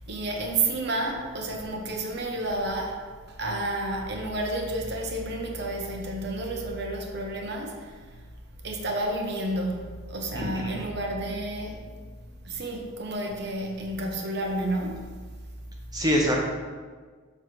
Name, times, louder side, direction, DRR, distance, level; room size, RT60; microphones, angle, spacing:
voice 1, 0.0-3.0 3.3-8.1 8.6-12.0 12.4-15.0, right 2 dB, 50° right, 1 dB, 1.0 m, -30 dB
voice 2, 10.3-10.9 15.9-16.4, equal, 20° right, -1 dB, 0.9 m, -25 dB
7.6 x 3.3 x 6.0 m, 1.5 s
head